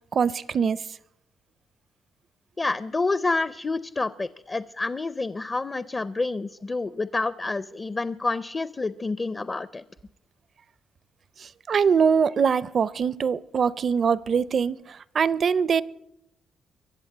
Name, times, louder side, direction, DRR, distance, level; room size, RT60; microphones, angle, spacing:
voice 1, 0.1-0.8 11.4-15.8, right 6 dB, 40° right, 0.5 m, -23 dB
voice 2, 2.6-9.8, left 3 dB, 20° left, 0.5 m, -28 dB
23.5 x 7.9 x 7.9 m
cardioid pair, 145°, 0 cm